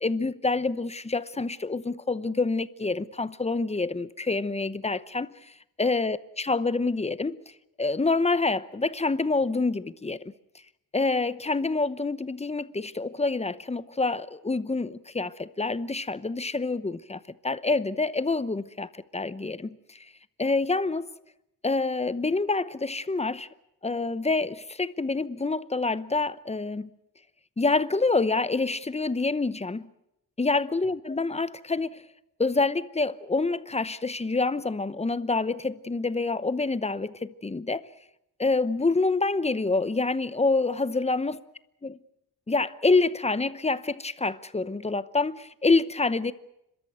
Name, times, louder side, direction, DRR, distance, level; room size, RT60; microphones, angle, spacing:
voice 1, 0.0-5.3 5.8-7.4 7.8-10.2 10.9-20.0 20.4-21.1 21.6-23.5 23.8-26.9 27.6-29.9 30.4-32.0 32.4-37.9 38.4-41.4 41.8-41.9 42.5-46.3, left 3 dB, 15° left, 0.8 m, -27 dB
30.0 x 13.5 x 9.2 m
wide cardioid pair, 120°, 37 cm